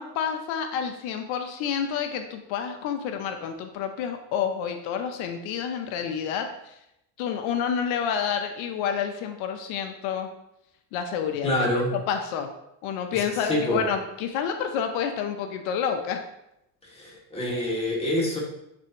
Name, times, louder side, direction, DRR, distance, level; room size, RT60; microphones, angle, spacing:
voice 1, 0.0-6.7 7.2-10.3 10.9-11.6 11.9-12.5 12.8-16.2, left 7 dB, 90° left, 6 dB, 0.7 m, -29 dB
voice 2, 11.4-11.9 13.4-13.8 16.8-18.4, left 1 dB, 15° left, -4 dB, 2.2 m, -26 dB
9.7 x 3.5 x 2.9 m, 0.83 s
cardioid pair, 95°, 46 cm